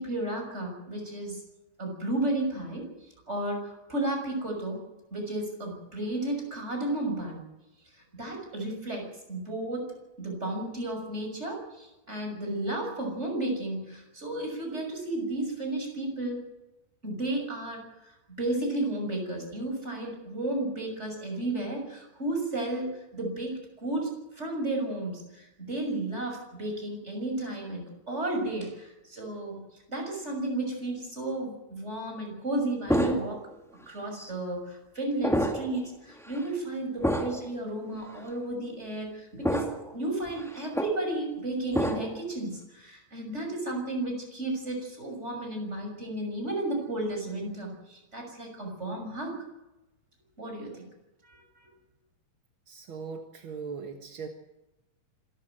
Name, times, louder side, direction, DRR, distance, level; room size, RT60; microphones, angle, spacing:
voice 1, 0.0-1.4 1.8-2.9 3.3-7.4 8.1-16.4 17.0-29.6 29.9-33.4 33.9-39.7 39.9-49.4 50.4-50.9 51.2-51.7, right 2 dB, 15° right, 2 dB, 6.5 m, -33 dB
sound 1, 32.9-33.5 34.2-34.3 35.2-35.8 36.2-36.4 37.0-37.5 38.2-38.3 39.4-39.9 40.3-41.0 41.7-42.2, equal, ahead, 1.2 m, -28 dB
voice 2, 52.7-54.3, right 5 dB, 55° right, 4 dB, 1.5 m, -39 dB
26.0 x 14.0 x 7.8 m, 0.97 s
omnidirectional pair, 4.3 m